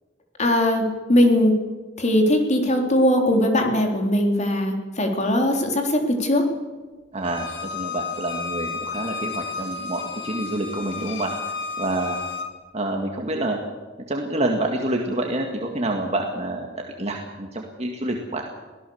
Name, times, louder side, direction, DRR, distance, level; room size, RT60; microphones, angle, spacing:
voice 1, 0.4-1.6 2.0-6.5, left 1 dB, 40° left, 3 dB, 3.6 m, -20 dB
voice 2, 7.1-11.3 11.8-12.2 12.7-13.6 14.1-16.7 17.0-18.4, right 1 dB, 35° right, 1 dB, 2.0 m, -27 dB
Bowed string instrument, 7.2-12.5, left 4 dB, 70° left, 2.6 m, -32 dB
24.0 x 16.5 x 7.2 m, 1.4 s
head